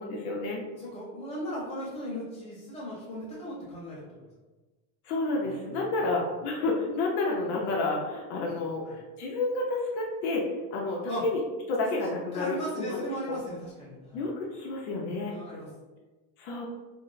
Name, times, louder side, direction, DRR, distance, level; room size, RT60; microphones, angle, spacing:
voice 1, 0.0-0.6 5.0-11.4 11.7-13.4 14.1-15.3 16.4-16.7, left 2 dB, 65° left, -1 dB, 0.8 m, -30 dB
voice 2, 0.7-4.0 5.4-5.9 8.9-9.0 11.0-11.2 12.0-14.2 15.3-15.7, equal, 15° left, -9 dB, 1.2 m, -37 dB
3.0 x 2.0 x 3.9 m, 1.2 s
supercardioid pair, 165°, 47 cm